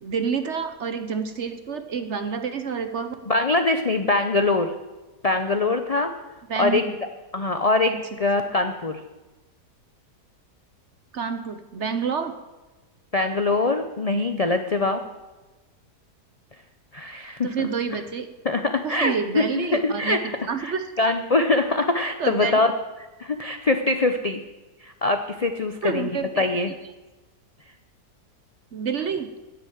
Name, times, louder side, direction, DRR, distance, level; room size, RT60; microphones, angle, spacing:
voice 1, 0.0-3.2 6.5-6.9 7.9-8.0 11.1-12.3 17.4-18.3 18.8-21.1 22.2-22.6 25.8-26.4 28.7-29.3, right 6 dB, 50° right, 9 dB, 1.0 m, -28 dB
voice 2, 3.3-4.7 5.2-6.1 6.6-6.8 7.3-9.0 13.1-15.0 16.9-17.5 18.4-20.3 20.6-22.7 23.2-24.4 24.8-26.1 26.4-26.7, left 3 dB, 65° left, 7 dB, 0.3 m, -23 dB
10.5 x 7.9 x 9.2 m, 1.2 s
omnidirectional pair, 1.8 m